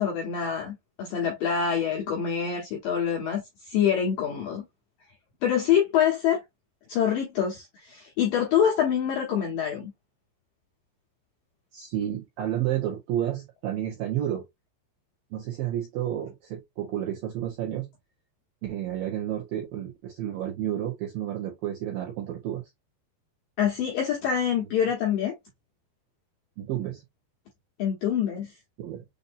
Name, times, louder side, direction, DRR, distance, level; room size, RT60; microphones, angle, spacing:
voice 1, 0.0-4.7 5.4-6.4 6.9-9.9 23.6-25.3 27.8-28.5, left 8 dB, 75° left, 2.0 m, -25 dB
voice 2, 11.7-14.4 15.3-17.9 18.6-22.6 26.6-27.0 28.8-29.0, right 11 dB, 75° right, 2.1 m, -31 dB
6.9 x 2.7 x 2.6 m
omnidirectional pair, 5.3 m